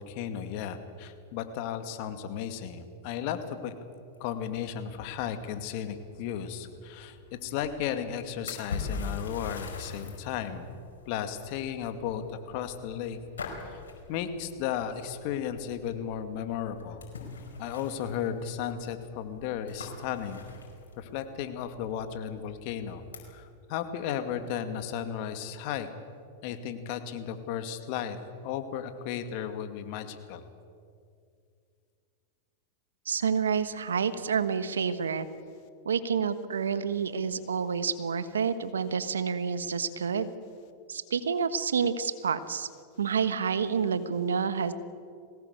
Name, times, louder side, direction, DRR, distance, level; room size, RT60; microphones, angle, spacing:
voice 1, 0.0-3.7 4.2-7.2 7.4-10.7 11.1-13.2 13.7-13.8 14.1-17.0 17.6-20.4 21.0-23.0 23.3-25.9 26.4-28.2 28.4-30.4, left 9 dB, 55° left, 8 dB, 2.2 m, -34 dB
sound 1, 4.1-23.2, left 4 dB, 85° left, 5.1 m, -44 dB
voice 2, 33.0-35.2 35.8-40.3 40.9-42.7 43.0-44.7, right 6 dB, 85° right, 12 dB, 1.3 m, -28 dB
21.5 x 18.0 x 8.2 m, 2.3 s
hypercardioid pair, 105°, 0 cm